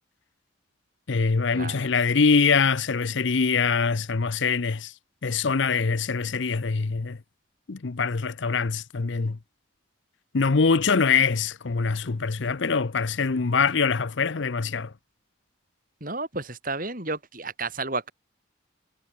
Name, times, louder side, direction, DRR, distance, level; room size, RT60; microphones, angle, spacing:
voice 1, 1.1-4.9 5.2-7.2 7.7-9.4 10.3-14.9, left 5 dB, 65° left, 0.7 m, -24 dB
voice 2, 16.0-18.1, right 3 dB, 40° right, 6.0 m, -32 dB
head